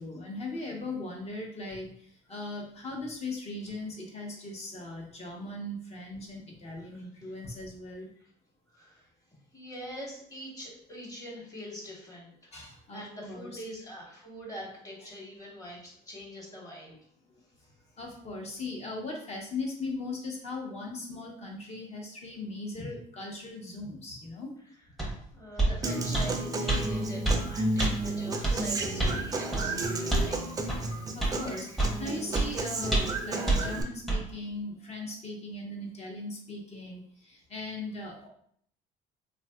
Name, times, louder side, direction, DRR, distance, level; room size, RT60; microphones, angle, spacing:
voice 1, 0.0-1.9 2.3-8.1 12.5-13.6 16.9-17.0 17.3-17.4 18.0-24.5 31.1-38.3, left 2 dB, 40° left, 0 dB, 0.8 m, -39 dB
voice 2, 6.8-7.3 8.2-8.3 8.7-9.1 9.5-16.9 22.8-22.9 25.3-30.4, equal, 20° left, -4 dB, 1.2 m, -44 dB
sound 1, 25.0-25.1 25.6-25.8 26.1-26.3 26.7-26.8 27.2-27.4 27.8-27.9 28.4-28.6 29.0-29.2 29.5-29.7 30.1-30.3 30.7-30.8 31.2-31.4 31.8-32.0 32.3-32.5 32.9-33.2 33.5-33.6 34.1-34.2, right 2 dB, ahead, 0.7 m, -26 dB
Human voice / Acoustic guitar, 25.8-33.8, right 2 dB, 20° right, 0.4 m, -32 dB
3.3 x 2.5 x 2.3 m, 0.63 s
cardioid pair, 110°, 17 cm